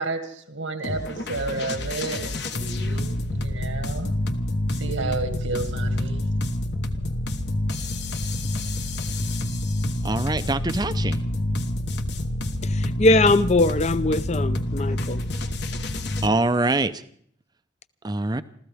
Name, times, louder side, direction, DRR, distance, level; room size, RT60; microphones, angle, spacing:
voice 1, 0.0-4.1 4.7-6.2, right 3 dB, 85° right, 1.9 m, -31 dB
sound 1, 0.8-16.3, left 1 dB, 60° left, 1.1 m, -27 dB
voice 2, 10.0-11.2 16.2-17.0 18.0-18.4, right 2 dB, 20° right, 0.6 m, -24 dB
voice 3, 12.6-15.2, left 2 dB, 35° left, 0.6 m, -21 dB
29.0 x 14.0 x 3.5 m
head